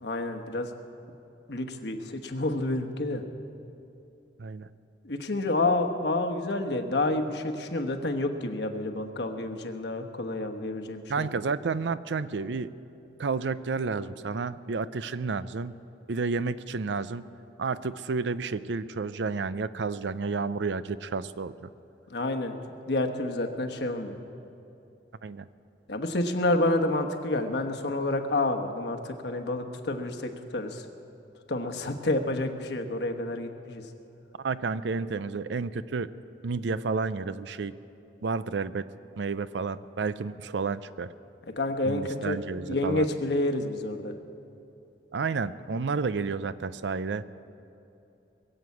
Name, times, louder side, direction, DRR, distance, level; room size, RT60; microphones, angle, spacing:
voice 1, 0.0-0.7 1.5-3.2 5.0-11.3 22.1-22.5 22.9-24.2 25.9-30.8 31.5-33.8 41.6-42.4 42.7-44.1, left 2 dB, 70° left, 4 dB, 1.1 m, -29 dB
voice 2, 11.1-12.7 13.2-15.7 16.1-17.2 17.6-21.7 25.2-25.5 34.4-36.1 36.4-37.7 38.2-38.9 39.2-41.1 41.8-43.1 45.1-47.2, right 4 dB, 80° right, 15 dB, 0.5 m, -31 dB
21.5 x 7.8 x 8.3 m, 2.8 s
head